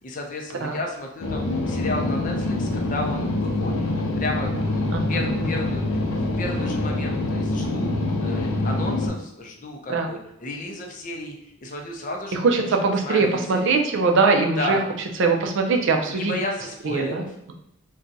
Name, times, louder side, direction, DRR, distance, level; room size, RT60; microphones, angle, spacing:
voice 1, 0.0-3.8 4.2-7.9 8.2-13.6 14.6-14.8 16.1-17.3, left 2 dB, 40° left, 1 dB, 0.5 m, -33 dB
sound 1, 1.2-9.1, left 2 dB, 85° left, 0.6 m, -25 dB
voice 2, 4.9-5.5 9.9-10.1 12.3-14.8 15.2-16.3 16.8-17.5, right 4 dB, 60° right, 3 dB, 0.4 m, -22 dB
2.6 x 2.2 x 3.8 m, 0.85 s
head